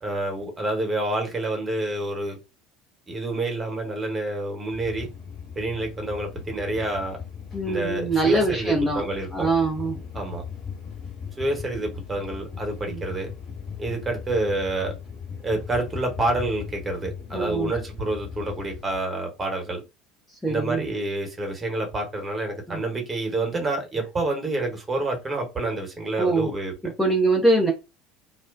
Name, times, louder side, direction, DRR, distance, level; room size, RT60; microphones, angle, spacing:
voice 1, 0.0-2.4 3.1-5.1 5.6-7.2 7.6-9.5 10.1-10.4 11.4-13.3 13.8-14.9 15.4-19.8 20.5-26.7, right 2 dB, 20° right, 1.0 m, -28 dB
sound 1, 4.7-19.0, left 6 dB, 45° left, 1.3 m, -38 dB
voice 2, 7.5-9.0 9.3-10.0 12.9-13.0 17.3-17.7 20.4-20.8 22.7-22.8 26.2-26.5 27.0-27.7, right 2 dB, 5° left, 0.7 m, -23 dB
2.3 x 2.3 x 2.3 m
figure-of-eight pair, 70°, 0 cm